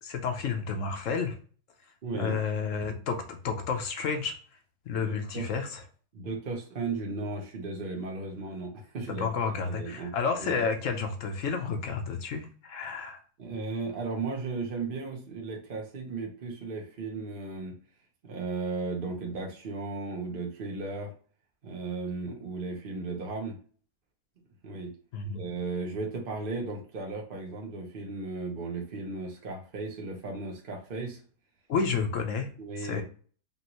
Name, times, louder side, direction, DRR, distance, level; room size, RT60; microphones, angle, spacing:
voice 1, 0.0-1.3 2.1-4.4 4.8-5.8 9.1-13.2 25.1-25.4 31.7-32.5 32.8-33.0, left 5 dB, 60° left, 5 dB, 1.0 m, -31 dB
voice 2, 2.0-2.4 5.0-5.1 5.3-5.5 6.1-9.3 9.7-10.1 10.4-10.6 13.4-17.7 18.2-21.1 21.6-23.6 24.6-24.9 25.3-31.2 32.6-33.0, right 3 dB, 40° right, 0 dB, 1.1 m, -35 dB
5.4 x 2.6 x 3.0 m, 0.41 s
omnidirectional pair, 1.7 m